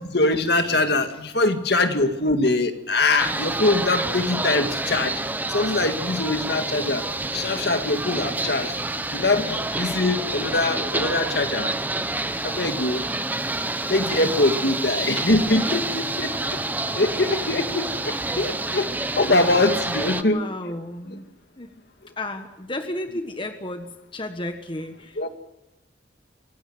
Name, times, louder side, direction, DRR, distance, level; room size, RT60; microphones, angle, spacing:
voice 1, 0.0-5.2 5.5-7.0 7.3-8.7 9.1-11.7 12.4-13.0 13.9-16.6 17.0-20.4 25.2-25.3, left 2 dB, 60° left, 7 dB, 2.1 m, -23 dB
voice 2, 0.9-1.2 14.2-14.4 15.1-16.0 16.9-17.0 19.3-19.5 20.1-21.3 21.6-21.7 22.2-25.2, left 1 dB, 30° left, 6 dB, 1.4 m, -34 dB
sound 1, 3.2-20.2, right 2 dB, 10° right, 0.8 m, -28 dB
25.0 x 16.5 x 7.9 m, 0.90 s
head